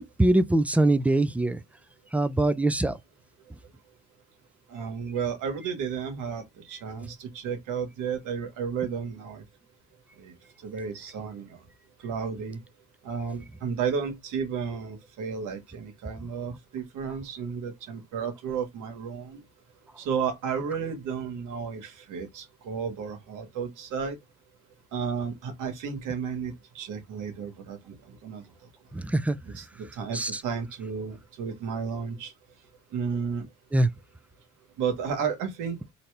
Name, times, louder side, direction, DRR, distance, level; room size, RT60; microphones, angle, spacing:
voice 1, 0.0-1.6 2.1-2.9 29.1-29.4 30.1-30.3 33.7-33.9, right 2 dB, 5° right, 0.4 m, -22 dB
voice 2, 4.7-9.4 10.2-10.3 10.6-11.6 12.0-12.6 13.0-19.4 20.0-24.2 24.9-28.4 29.5-32.3 32.9-33.5 34.8-35.8, right 6 dB, 85° right, 1.4 m, -33 dB
4.2 x 2.8 x 3.2 m
cardioid pair, 90°, 30 cm